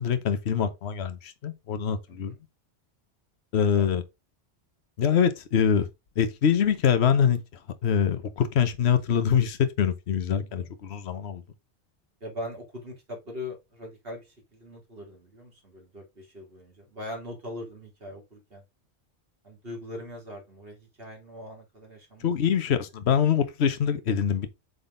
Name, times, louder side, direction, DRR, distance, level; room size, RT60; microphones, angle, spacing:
voice 1, 0.0-2.3 3.5-4.0 5.0-5.9 6.2-7.4 7.8-11.4 22.2-24.5, left 7 dB, 65° left, 1.2 m, -24 dB
voice 2, 12.2-18.6 19.4-22.3 22.7-22.8, left 1 dB, 55° right, 2.4 m, -41 dB
8.0 x 3.8 x 3.8 m
omnidirectional pair, 1.2 m